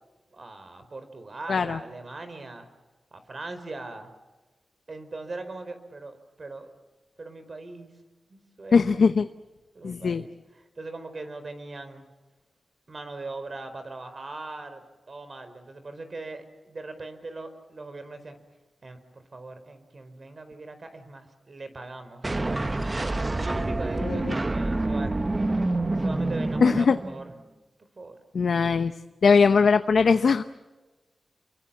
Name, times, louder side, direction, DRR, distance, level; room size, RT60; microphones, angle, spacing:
voice 1, 0.3-2.7 3.1-4.1 4.9-6.7 7.2-7.9 8.3-9.1 9.7-12.0 12.9-18.4 18.8-25.4 25.9-27.3 27.8-28.2, right 2 dB, 45° right, 9 dB, 4.6 m, -40 dB
voice 2, 8.7-9.3 9.8-10.2 24.1-24.3 26.6-27.0 28.3-28.9 29.2-30.4, left 5 dB, 70° left, 9 dB, 0.9 m, -20 dB
sound 1, 22.2-27.4, right 2 dB, 25° right, 1.0 m, -27 dB
29.5 x 23.5 x 7.4 m, 1.2 s
wide cardioid pair, 105°, 0 cm